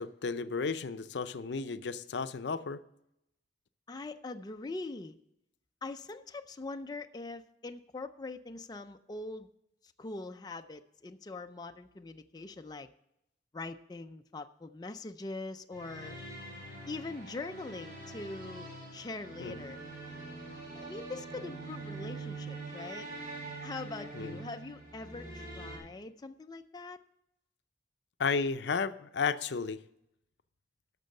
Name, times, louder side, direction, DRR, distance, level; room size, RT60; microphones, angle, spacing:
voice 1, 0.0-2.8 19.4-19.6 24.1-24.4 28.2-29.8, left 5 dB, 75° left, 13 dB, 0.5 m, -33 dB
voice 2, 3.9-5.2 5.8-9.5 9.8-12.9 13.5-16.2 16.9-19.8 20.7-23.1 23.6-27.0, left 3 dB, 20° left, 7 dB, 0.4 m, -42 dB
sound 1, 15.7-25.8, right 2 dB, 55° right, 5.2 m, -44 dB
12.0 x 6.7 x 6.4 m, 0.81 s
head